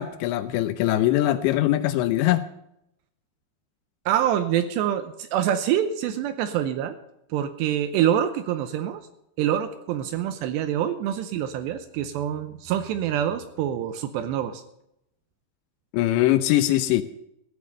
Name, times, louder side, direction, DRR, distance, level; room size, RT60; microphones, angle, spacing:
voice 1, 0.0-2.4 15.9-17.0, left 14 dB, 80° left, 12 dB, 2.7 m, -22 dB
voice 2, 4.1-7.0 7.3-9.0 9.4-14.6, right 10 dB, 80° right, 11 dB, 2.7 m, -26 dB
15.0 x 8.3 x 6.6 m, 0.81 s
omnidirectional pair, 5.5 m